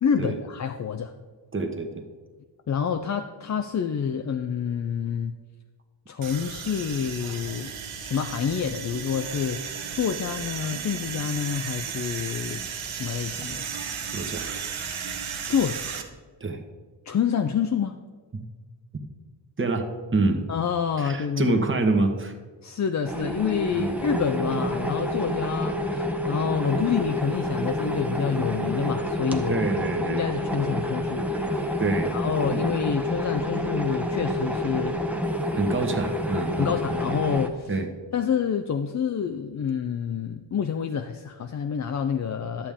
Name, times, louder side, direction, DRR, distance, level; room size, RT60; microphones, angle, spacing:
voice 1, 0.0-1.1 2.7-5.3 6.1-7.7 8.0-12.7 13.0-13.6 15.5-16.0 17.1-17.9 20.5-21.6 22.6-29.6 30.1-31.5 32.1-35.0 36.6-37.8 38.1-42.7, left 7 dB, 40° left, 7 dB, 0.5 m, -28 dB
voice 2, 1.5-2.0 14.1-14.5 16.4-16.6 18.3-18.4 19.6-20.5 21.0-22.3 23.8-24.0 29.5-30.2 31.8-32.1 32.5-32.6 35.5-36.7 37.7-37.9, right 3 dB, 25° right, 5 dB, 1.2 m, -26 dB
sound 1, 6.2-16.0, right 7 dB, 85° right, 1.0 m, -34 dB
sound 2, 23.0-37.5, equal, 5° right, 0.8 m, -28 dB
11.5 x 7.0 x 3.6 m, 1.5 s
cardioid pair, 80°, 47 cm